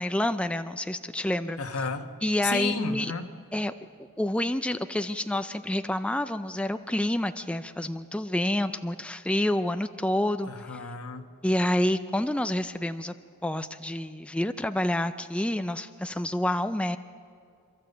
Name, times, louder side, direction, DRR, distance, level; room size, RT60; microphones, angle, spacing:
voice 1, 0.0-1.6 2.2-3.1 3.5-3.7 4.2-10.5 11.4-13.1 13.4-17.0, left 1 dB, 5° left, 9 dB, 0.4 m, -28 dB
voice 2, 1.6-2.1 2.4-3.3 10.5-11.3, left 5 dB, 85° left, 6 dB, 1.3 m, -33 dB
28.0 x 12.5 x 7.8 m, 2.5 s
head